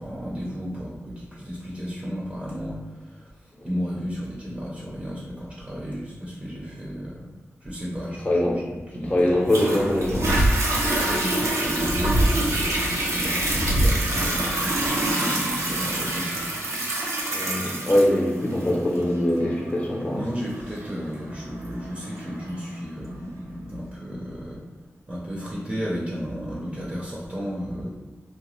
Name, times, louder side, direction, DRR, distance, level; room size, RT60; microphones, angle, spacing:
voice 1, 0.0-3.3 3.6-7.3 7.6-8.2 8.7-9.2 11.1-16.5 20.1-24.7 25.1-28.0, equal, 25° right, -5 dB, 0.6 m, -33 dB
voice 2, 8.3-8.6 9.1-10.3 16.7-16.8 17.3-20.2, left 1 dB, 30° left, -3 dB, 0.7 m, -22 dB
Toilet flush, 9.5-22.5 23.1-23.2, right 1 dB, 80° right, 0.6 m, -27 dB
sound 1, 9.8-15.3, equal, 65° left, 0.4 m, -27 dB
2.9 x 2.1 x 3.0 m, 1.3 s
wide cardioid pair, 70°, 5 cm